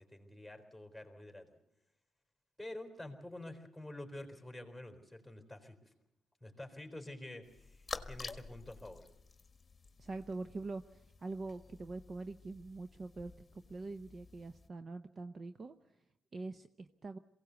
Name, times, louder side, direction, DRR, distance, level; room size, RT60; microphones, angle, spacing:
voice 1, 0.0-1.6 2.6-5.8 6.4-9.1, left 1 dB, ahead, 4 dB, 3.9 m, -48 dB
sound 1, 7.4-14.7, left 4 dB, 25° left, 1.5 m, -50 dB
voice 2, 10.0-15.7 16.3-17.2, right 3 dB, 35° right, 10 dB, 0.7 m, -44 dB
22.5 x 17.0 x 8.2 m, 0.88 s
cardioid pair, 90°, 0 cm